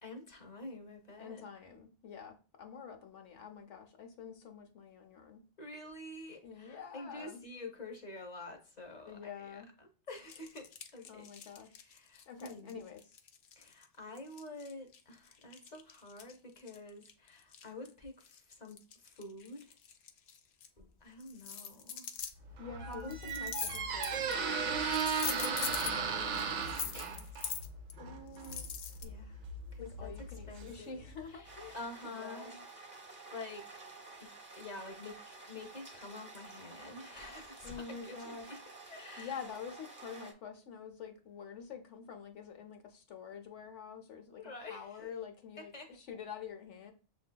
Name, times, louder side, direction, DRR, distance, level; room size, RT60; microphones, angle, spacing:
voice 1, 0.0-1.4 5.6-11.5 11.8-12.9 13.6-19.7 20.8-22.1 22.8-23.6 25.2-27.3 29.0-29.4 29.7-30.1 30.5-31.0 31.3-31.5 31.7-32.5 32.9-34.3 34.6-38.6 38.9-39.4 44.4-45.0 45.6-45.9, left 2 dB, 40° left, 4 dB, 0.8 m, -48 dB
voice 2, 1.2-5.4 6.4-7.4 9.1-9.7 11.1-11.9 12.3-13.2 22.6-24.6 28.0-28.7 29.8-31.8 32.2-32.6 37.6-38.5 39.2-46.9, left 6 dB, 85° left, 5 dB, 1.1 m, -47 dB
sound 1, 10.1-13.8 14.2-17.9 18.2-20.7 21.2-22.3 22.9-24.5 24.8-26.0 26.3-27.9 28.4-29.0, left 7 dB, 70° left, 0.8 m, -42 dB
Squeak, 22.5-31.2, right 5 dB, 60° right, 0.5 m, -37 dB
sound 2, 31.4-40.3, right 3 dB, 10° right, 0.7 m, -51 dB
6.9 x 2.7 x 2.2 m, 0.35 s
omnidirectional pair, 1.2 m